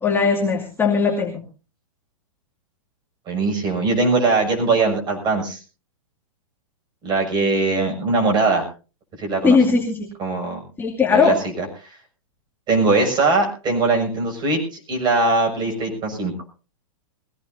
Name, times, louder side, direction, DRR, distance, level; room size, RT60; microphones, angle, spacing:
voice 1, 0.0-1.4 9.4-10.1 10.8-11.4, left 5 dB, 10° left, -1 dB, 2.3 m, -18 dB
voice 2, 3.3-5.6 7.0-8.7 9.2-9.6 10.2-10.6 11.1-11.6 12.7-14.6 14.9-16.3, right 3 dB, 25° right, 2 dB, 6.6 m, -20 dB
21.5 x 17.0 x 2.7 m, 0.34 s
hypercardioid pair, 135°, 18 cm